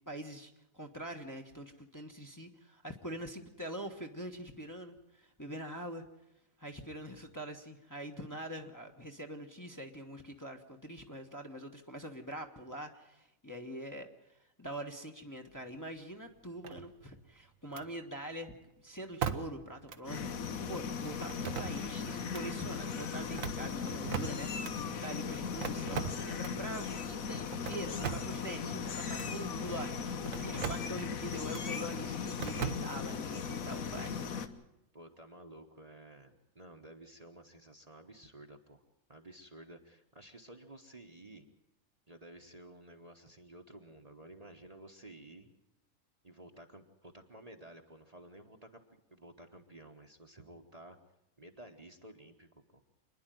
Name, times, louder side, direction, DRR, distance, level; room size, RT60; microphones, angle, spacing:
voice 1, 0.1-6.1 6.6-24.6 24.9-34.1, right 1 dB, 15° left, 2 dB, 1.2 m, -44 dB
sound 1, 16.6-17.2 17.7-17.9 19.2-19.6 19.9-20.0 21.3-22.0 22.3-22.5 23.2-24.8 25.6-26.6 27.5-28.4 29.1-29.3 30.3-30.9 31.5-31.7 32.4-33.2, right 7 dB, 75° right, 1.4 m, -39 dB
sound 2, 20.0-34.5, left 6 dB, 90° left, 1.5 m, -38 dB
Meow, 22.1-22.5 22.9-23.6 24.2-25.0 26.1-26.5 26.7-27.2 27.9-28.6 28.9-29.6 30.5-31.0 31.3-31.9 32.2-32.8 33.3-33.7, left 5 dB, 45° left, 1.1 m, -47 dB
voice 2, 25.3-25.9 34.9-38.8 39.1-41.5 42.1-45.5 46.2-51.0 51.4-52.8, right 1 dB, 30° right, 4 dB, 1.2 m, -53 dB
27.0 x 10.5 x 9.1 m, 0.86 s
omnidirectional pair, 1.4 m